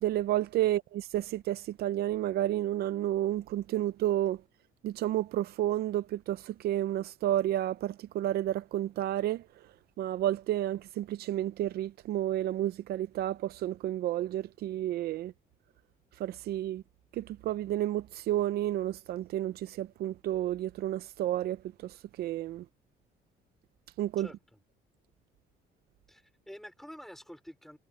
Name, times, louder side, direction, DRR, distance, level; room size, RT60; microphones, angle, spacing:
voice 1, 0.0-4.4 4.8-9.4 10.0-15.3 16.2-16.8 17.1-22.6 24.0-24.3, right 13 dB, 70° right, 0.7 m, -31 dB
voice 2, 24.2-24.6 26.1-27.8, equal, ahead, 3.7 m, -48 dB
cardioid pair, 110°, 17 cm